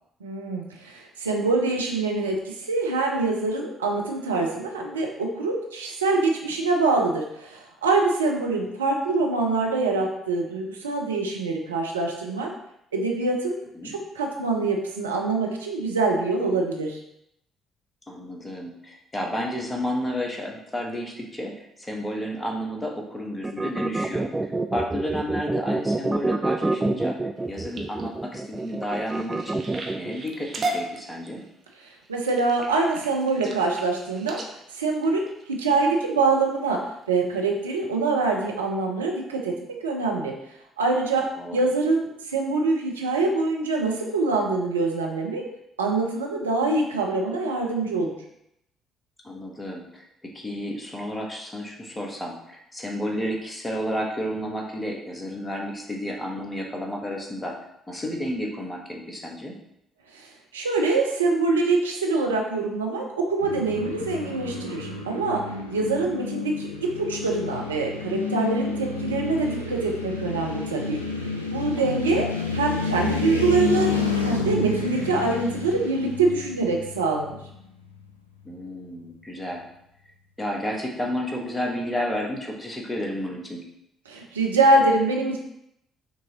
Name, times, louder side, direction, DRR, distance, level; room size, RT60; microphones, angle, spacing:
voice 1, 0.2-12.5 12.9-13.6 13.8-17.0 32.1-35.2 35.5-40.3 40.8-45.4 45.8-48.1 60.1-71.0 71.5-73.9 74.2-77.4 84.1-85.4, right 3 dB, 80° right, 0 dB, 0.6 m, -24 dB
voice 2, 18.1-27.1 27.5-29.6 29.9-31.4 41.4-41.7 49.2-57.6 57.9-59.5 65.8-66.1 71.7-72.3 78.4-79.6 80.4-83.6, equal, 15° left, 0 dB, 1.1 m, -31 dB
sound 1, 23.4-30.2, right 2 dB, 20° right, 0.3 m, -27 dB
sound 2, 27.4-36.0 36.6-37.0 37.4-37.8 38.2-38.3 38.6-38.7, right 2 dB, 45° right, 0.7 m, -37 dB
sound 3, 63.4-77.6, left 4 dB, 90° left, 0.4 m, -30 dB
6.0 x 2.9 x 2.8 m, 0.78 s
figure-of-eight pair, 45°, 0 cm